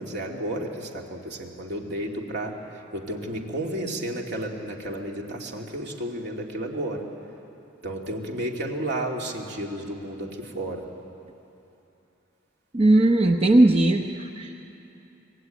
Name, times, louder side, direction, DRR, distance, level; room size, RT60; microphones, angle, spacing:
voice 1, 0.0-2.6 2.9-7.0 7.8-10.9, right 1 dB, 60° right, 0 dB, 2.8 m, -32 dB
voice 2, 12.7-14.5, right 2 dB, 30° right, 3 dB, 0.9 m, -19 dB
26.0 x 20.5 x 9.3 m, 2.9 s
head